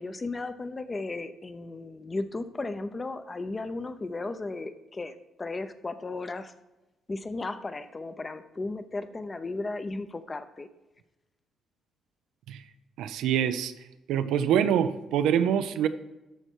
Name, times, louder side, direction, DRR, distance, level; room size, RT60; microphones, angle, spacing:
voice 1, 0.0-6.5 7.1-10.7, left 3 dB, 25° left, 0.7 m, -35 dB
voice 2, 13.0-13.7 14.1-15.9, right 9 dB, 85° right, 0.5 m, -25 dB
13.0 x 4.5 x 4.6 m
cardioid pair, 90°, 0 cm